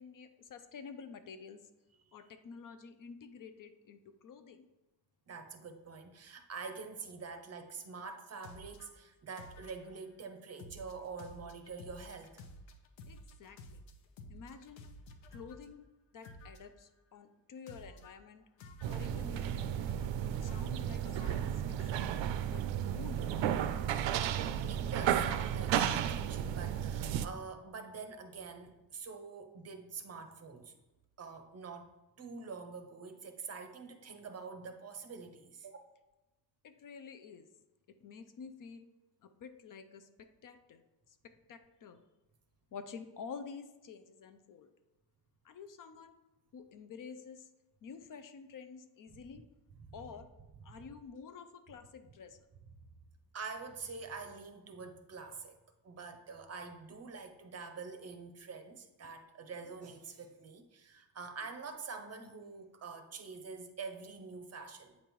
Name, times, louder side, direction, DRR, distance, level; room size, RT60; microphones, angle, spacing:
voice 1, 0.0-1.6 2.1-4.7 13.1-13.8 14.3-14.8 15.3-15.8 16.1-18.4 18.8-19.8 20.3-21.5 21.8-22.1 22.5-22.6 22.9-23.5 36.6-37.5 38.0-38.9 39.2-40.8 41.1-41.2 41.5-42.0 42.7-44.7 45.4-46.1 46.5-47.5 47.8-49.4 49.9-50.3 50.6-52.5 59.0-59.1, left 6 dB, 45° left, 9 dB, 0.5 m, -50 dB
voice 2, 5.3-12.4 24.3-30.7 31.2-35.8 53.3-55.6 55.8-65.0, right 4 dB, 35° right, 7 dB, 0.6 m, -46 dB
sound 1, 8.4-8.9 9.4-10.1 10.6-15.6 16.2-16.8 17.7-18.1 18.6-20.2 20.4-21.3, left 2 dB, 80° left, 0.8 m, -52 dB
sound 2, 18.8-27.3, right 10 dB, 80° right, 0.5 m, -33 dB
8.4 x 5.2 x 3.0 m, 1.0 s
cardioid pair, 150°, 45 cm